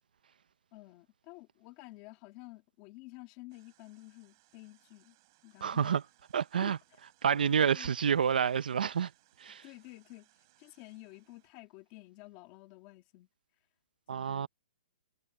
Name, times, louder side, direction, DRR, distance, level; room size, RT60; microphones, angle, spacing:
voice 1, 0.7-5.2 5.4-6.0 6.5-7.0 7.6-7.9 9.5-10.3 10.6-13.3 14.1-14.5, left 21 dB, 20° left, 2.4 m, -51 dB
Hum of Cascade Brewery rivulet, 3.5-11.5, right 21 dB, 25° right, 5.9 m, -69 dB
voice 2, 5.6-6.0 6.3-6.8 7.2-9.1 9.4-9.6 14.1-14.5, right 7 dB, 65° right, 0.7 m, -28 dB
hypercardioid pair, 180°, 5 cm